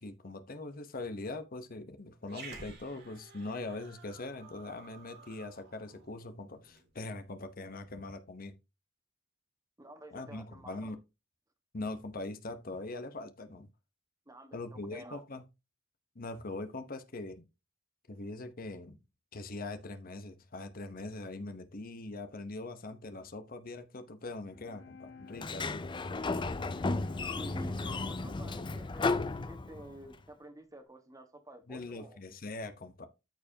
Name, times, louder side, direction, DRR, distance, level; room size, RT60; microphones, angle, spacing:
voice 1, 0.0-8.6 10.1-11.0 11.7-13.7 14.5-15.4 16.1-17.4 18.1-19.0 19.3-25.9 31.7-33.1, left 2 dB, 45° left, 0.9 m, -42 dB
Growling, 2.2-6.9, right 3 dB, 55° right, 2.3 m, -52 dB
voice 2, 9.8-10.9 14.3-15.2 27.3-32.2, right 1 dB, 15° right, 1.4 m, -50 dB
Bowed string instrument, 24.5-30.5, left 3 dB, 65° left, 2.7 m, -52 dB
Sliding door, 25.3-30.1, left 3 dB, 25° left, 0.5 m, -34 dB
13.5 x 4.6 x 2.8 m
head